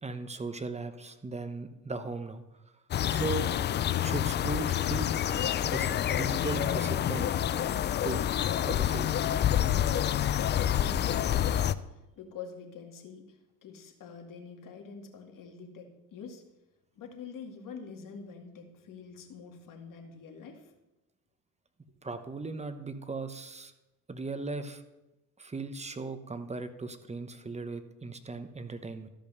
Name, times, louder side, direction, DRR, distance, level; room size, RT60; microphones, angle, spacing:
voice 1, 0.0-2.4 3.1-3.5 4.0-5.1 5.6-7.3 8.0-8.2 8.6-9.2 22.0-23.7 24.1-24.8 25.4-29.1, right 3 dB, 15° right, 10 dB, 1.0 m, -37 dB
sound 1, 2.9-11.7, left 10 dB, 25° left, 0.3 m, -28 dB
voice 2, 10.6-16.4 17.0-20.7, left 5 dB, 45° left, 3 dB, 2.2 m, -46 dB
13.0 x 5.4 x 6.6 m, 0.97 s
supercardioid pair, 85°, 44 cm